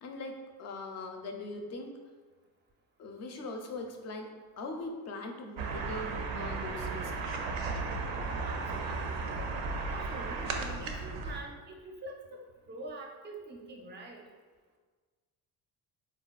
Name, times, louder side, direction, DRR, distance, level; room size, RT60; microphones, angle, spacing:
voice 1, 0.0-2.0 3.0-7.1, left 2 dB, 40° left, 3 dB, 0.5 m, -41 dB
sound 1, 5.6-11.4, right 4 dB, 80° right, 0.5 m, -35 dB
voice 2, 8.5-9.4 9.9-14.2, right 2 dB, 25° right, 1 dB, 0.5 m, -45 dB
3.7 x 2.3 x 2.3 m, 1.4 s
cardioid pair, 105°, 41 cm